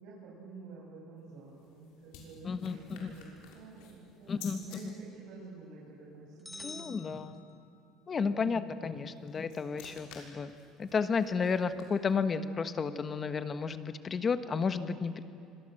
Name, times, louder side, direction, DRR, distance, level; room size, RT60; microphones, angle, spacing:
voice 1, 0.0-3.3 3.5-6.9 8.2-9.6, right 4 dB, 70° right, -5 dB, 7.2 m, -50 dB
sound 1, 1.2-4.8 9.0-12.3, left 6 dB, 80° left, 6.3 m, -53 dB
voice 2, 2.4-3.1 4.3-4.9 6.6-7.4 8.1-10.5 10.8-15.2, left 5 dB, 25° left, 10 dB, 1.3 m, -32 dB
sound 2, 6.4-8.0, left 3 dB, 5° left, 1.8 m, -48 dB
28.0 x 25.5 x 7.9 m, 2.7 s
cardioid pair, 150°, 0 cm